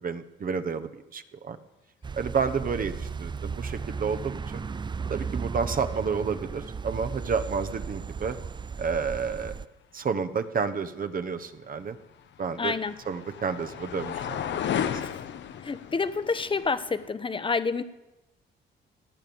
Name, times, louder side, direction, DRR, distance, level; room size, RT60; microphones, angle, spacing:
voice 1, 0.0-1.6 2.1-4.6 5.1-8.4 8.8-9.5 9.9-12.0 12.4-12.8 13.0-14.6 14.9-15.0, right 5 dB, 45° right, 9 dB, 1.1 m, -30 dB
sound 1, 2.0-9.6, right 5 dB, 25° right, 0.5 m, -35 dB
sound 2, 11.8-17.1, left 9 dB, 65° left, 1.0 m, -34 dB
voice 2, 12.6-12.9 15.0-15.1 15.6-17.8, left 4 dB, 25° left, 13 dB, 1.0 m, -28 dB
18.0 x 9.0 x 7.1 m, 1.0 s
cardioid pair, 90°, 20 cm